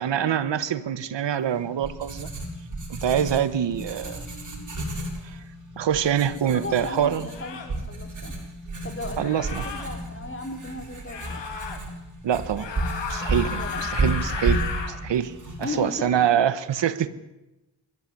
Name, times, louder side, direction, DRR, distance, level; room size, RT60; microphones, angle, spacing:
voice 1, 0.0-2.3 2.9-4.2 5.2-5.4 5.8-7.3 9.2-9.7 12.2-12.7 13.1-15.3 15.6-17.1, right 9 dB, 80° right, 14 dB, 1.3 m, -25 dB
Writing, 1.4-16.2, right 2 dB, 45° right, 6.8 m, -33 dB
sound 1, 5.9-6.1 7.3-7.8 9.2-9.9 11.1-11.8 12.5-15.0, left 6 dB, 90° left, 3.4 m, -34 dB
voice 2, 6.5-8.3 8.8-11.4 13.6-13.9 15.6-16.1, left 2 dB, 30° left, 5 dB, 4.3 m, -36 dB
26.5 x 14.0 x 9.9 m, 0.98 s
cardioid pair, 75°, 43 cm